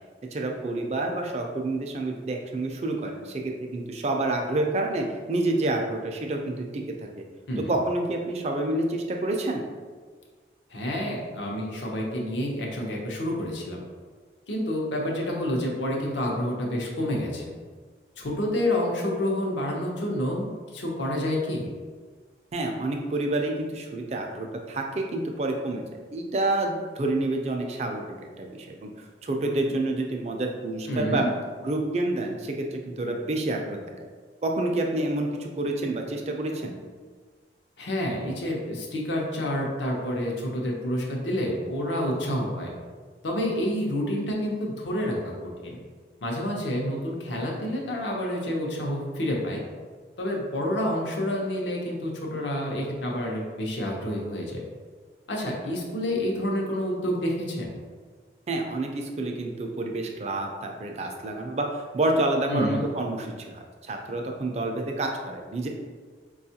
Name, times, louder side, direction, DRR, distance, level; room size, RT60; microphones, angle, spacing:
voice 1, 0.3-6.8 7.2-7.3 7.7-9.6 22.5-25.8 26.1-28.9 29.2-31.2 31.6-33.8 34.4-36.8 58.5-65.7, right 2 dB, 35° right, 2 dB, 0.3 m, -28 dB
voice 2, 7.5-7.8 10.7-13.8 14.5-17.5 18.2-21.7 30.9-31.3 37.8-42.7 43.2-45.8 46.2-49.6 50.2-54.6 55.3-57.7 62.5-62.8, left 1 dB, 85° left, -1 dB, 0.7 m, -28 dB
4.2 x 2.3 x 2.7 m, 1.5 s
head